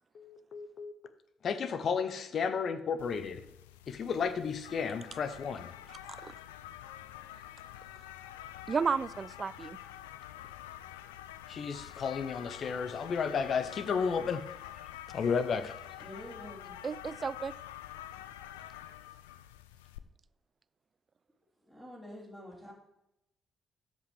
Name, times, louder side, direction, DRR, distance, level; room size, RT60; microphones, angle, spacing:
voice 1, 0.1-0.9 1.4-3.4 3.9-5.7 11.5-14.4 15.1-15.7, left 6 dB, 50° left, 12 dB, 0.8 m, -33 dB
sound 1, 3.0-20.0, left 12 dB, 75° left, 0.3 m, -47 dB
voice 2, 5.9-6.3 8.7-9.8 16.8-17.5, right 5 dB, 40° right, 18 dB, 0.4 m, -33 dB
voice 3, 16.0-16.8 21.6-22.7, left 1 dB, 5° left, -7 dB, 3.4 m, -47 dB
13.0 x 5.3 x 3.4 m, 0.86 s
figure-of-eight pair, 40°, 0 cm